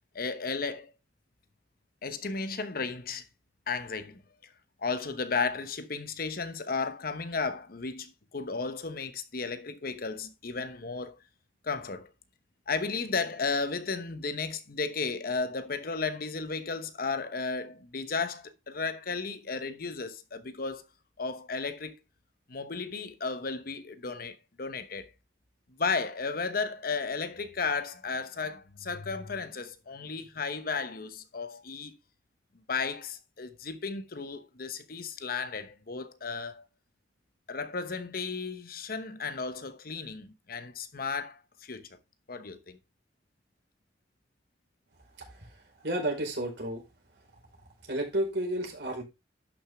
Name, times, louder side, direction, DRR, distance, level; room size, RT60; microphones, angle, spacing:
voice 1, 0.1-0.9 2.0-3.3 3.7-4.5 4.8-11.2 11.6-12.1 12.7-20.9 21.2-22.0 22.5-25.1 25.7-32.0 32.7-36.6 37.5-41.9 42.3-42.8, left 4 dB, 55° left, 1.0 m, -34 dB
voice 2, 45.8-46.8 47.9-49.0, right 1 dB, 65° right, 4.8 m, -31 dB
12.0 x 6.5 x 3.5 m
head